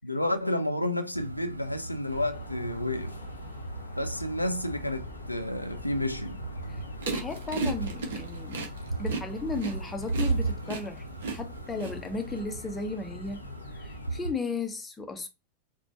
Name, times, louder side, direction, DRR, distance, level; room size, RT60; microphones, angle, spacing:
voice 1, 0.0-3.2 4.0-6.4, left 1 dB, 85° left, 0.3 m, -30 dB
sound 1, 1.1-14.3, right 3 dB, 85° right, 0.4 m, -37 dB
sound 2, 2.1-14.1, left 6 dB, 60° left, 0.7 m, -46 dB
voice 2, 6.7-8.6 9.0-13.4 13.7-15.3, left 3 dB, 15° left, 0.7 m, -35 dB
sound 3, 7.0-12.4, right 4 dB, 60° right, 0.8 m, -35 dB
4.2 x 2.2 x 2.7 m
figure-of-eight pair, 90°, 0 cm